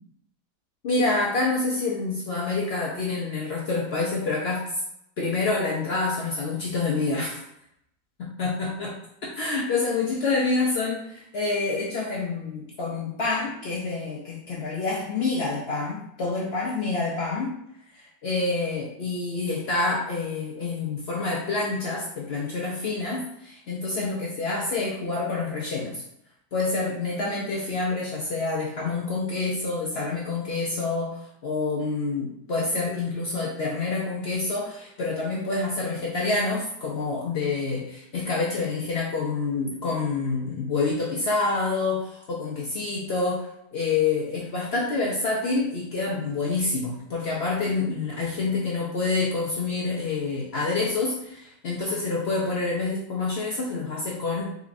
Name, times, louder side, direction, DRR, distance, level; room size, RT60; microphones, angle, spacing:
voice 1, 0.8-4.6 5.2-7.4 8.2-8.9 9.4-17.6 17.9-26.0 26.5-54.5, left 3 dB, 75° left, -3 dB, 0.5 m, -27 dB
3.8 x 2.9 x 2.5 m, 0.79 s
omnidirectional pair, 1.7 m